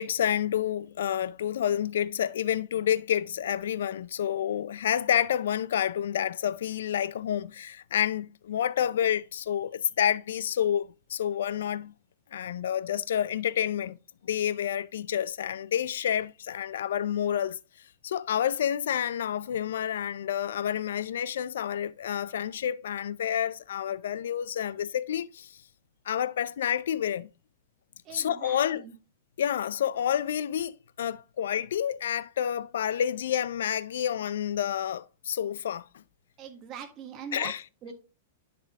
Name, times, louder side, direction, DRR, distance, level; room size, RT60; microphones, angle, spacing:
voice 1, 0.0-11.9 12.3-14.0 14.2-17.6 18.0-25.5 26.1-27.3 28.1-28.8 29.4-30.7 31.0-35.8 37.3-37.6, left 9 dB, 80° left, 0.4 m, -29 dB
voice 2, 28.0-28.9 36.4-37.5 37.8-37.9, right 7 dB, 30° right, 1.3 m, -42 dB
10.5 x 3.6 x 3.5 m
hypercardioid pair, 140°, 0 cm